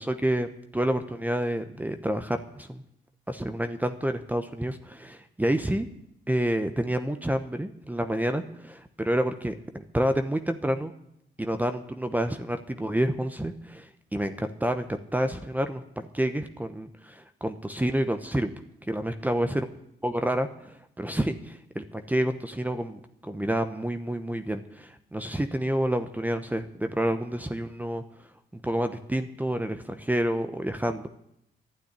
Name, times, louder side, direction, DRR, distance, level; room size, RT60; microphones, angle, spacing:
voice 1, 0.0-2.8 3.3-5.9 6.3-10.9 11.4-18.5 18.8-19.7 20.0-28.0 28.5-31.1, right 1 dB, 10° right, 8 dB, 0.9 m, -29 dB
12.0 x 9.2 x 9.9 m, 0.78 s
cardioid pair, 90°, 20 cm